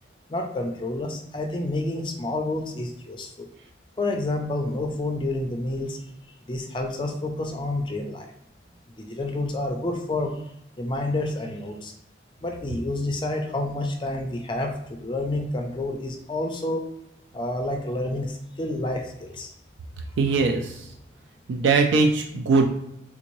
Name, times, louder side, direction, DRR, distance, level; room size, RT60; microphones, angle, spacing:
voice 1, 0.3-3.5 4.0-6.0 6.5-8.3 9.0-10.4 10.8-11.9 12.4-16.8 17.3-19.5, left 2 dB, 25° left, 3 dB, 0.4 m, -29 dB
voice 2, 20.2-20.7 21.5-22.7, right 4 dB, 80° right, 3 dB, 0.3 m, -20 dB
3.6 x 2.6 x 3.0 m, 0.80 s
head